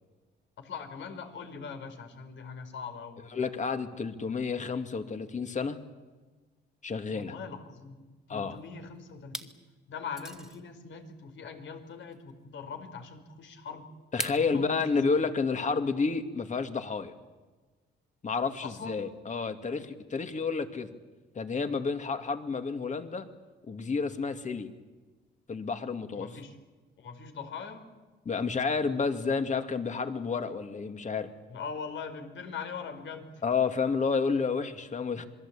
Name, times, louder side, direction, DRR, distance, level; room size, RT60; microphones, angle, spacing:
voice 1, 0.6-3.3 7.1-9.5 9.9-13.9 14.3-15.1 18.6-19.1 26.1-26.6 27.0-27.9 31.5-33.4, left 5 dB, 70° left, 7 dB, 4.5 m, -42 dB
voice 2, 3.3-5.8 6.8-7.3 8.3-8.6 14.1-17.1 18.2-20.9 21.3-23.3 23.7-24.7 25.5-26.3 28.3-31.3 33.4-35.2, left 5 dB, 40° left, 8 dB, 2.6 m, -30 dB
sound 1, 8.4-8.8 9.2-9.6 10.1-10.6 12.1-12.2 14.2-14.5, right 1 dB, 5° right, 2.1 m, -38 dB
27.0 x 21.5 x 8.7 m, 1.3 s
cardioid pair, 90°, 20 cm